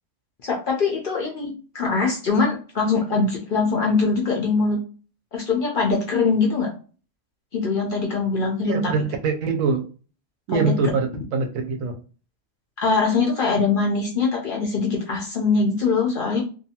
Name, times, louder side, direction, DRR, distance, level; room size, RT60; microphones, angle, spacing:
voice 1, 0.4-4.8 5.3-6.7 7.5-8.9 10.5-10.7 12.8-16.4, left 4 dB, 55° left, -1 dB, 0.6 m, -22 dB
voice 2, 8.6-9.8 10.5-11.9, right 4 dB, 85° right, 4 dB, 1.0 m, -23 dB
2.6 x 2.3 x 2.7 m, 0.37 s
omnidirectional pair, 1.4 m